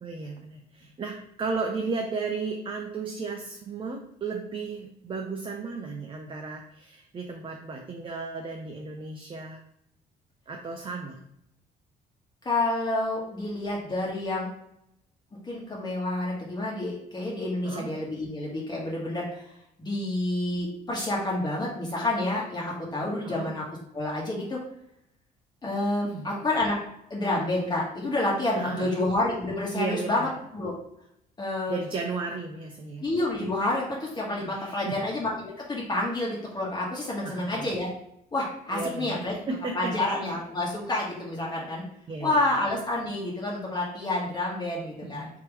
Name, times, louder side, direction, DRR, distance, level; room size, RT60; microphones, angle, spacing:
voice 1, 0.0-9.6 10.5-11.2 17.6-17.9 23.2-23.5 26.1-26.3 28.6-29.0 29.7-30.3 31.7-33.1 34.4-35.0 37.2-37.7 38.7-40.1 42.1-42.4 45.0-45.3, right 4 dB, 30° right, 2 dB, 0.6 m, -34 dB
voice 2, 12.4-14.5 15.4-19.4 19.8-23.6 23.9-24.6 25.6-26.7 27.1-30.7 31.4-31.8 33.0-37.9 38.3-39.3 39.7-41.8 42.2-45.3, left 2 dB, 25° left, -4 dB, 1.3 m, -29 dB
3.5 x 3.0 x 4.6 m, 0.76 s
cardioid pair, 110°, 17 cm